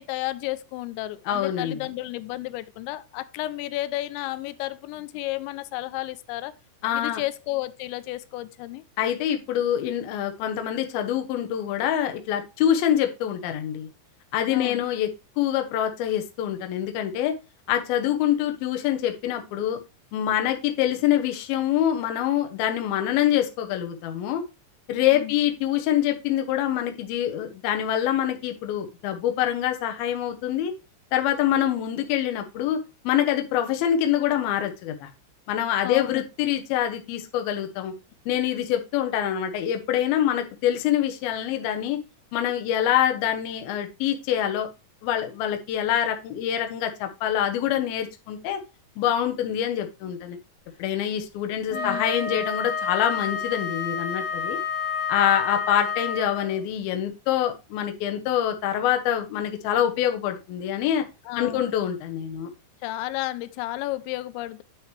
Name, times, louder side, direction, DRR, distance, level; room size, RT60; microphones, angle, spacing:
voice 1, 0.0-6.5 6.9-8.8 14.5-14.8 25.1-25.3 35.8-36.2 51.7-52.0 52.3-52.4 61.3-61.6 62.8-64.6, left 17 dB, 90° left, 2.9 m, -32 dB
voice 2, 1.3-1.9 6.8-7.2 9.0-13.9 14.3-15.1 15.4-17.3 17.7-19.8 20.1-24.4 24.9-30.7 31.1-32.8 33.0-35.1 35.5-37.9 38.3-42.0 42.3-44.7 45.0-48.6 49.0-50.4 50.8-54.6 55.1-61.0 61.4-62.5, left 10 dB, 70° left, 2.5 m, -25 dB
Wind instrument woodwind instrument, 51.7-56.6, left 5 dB, 55° left, 2.1 m, -29 dB
9.0 x 6.5 x 3.1 m
omnidirectional pair, 5.1 m